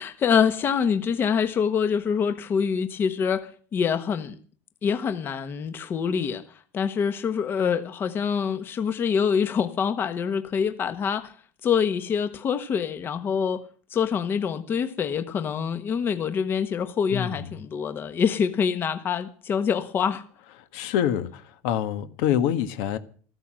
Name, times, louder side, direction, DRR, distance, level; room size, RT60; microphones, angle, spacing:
voice 1, 0.0-4.4 4.8-6.4 6.7-11.3 11.6-13.6 13.9-20.2, left 7 dB, 30° left, 1.3 m, -25 dB
voice 2, 17.1-17.6 20.7-23.0, left 10 dB, 70° left, 1.5 m, -26 dB
14.5 x 13.5 x 6.3 m
supercardioid pair, 130°, 7 cm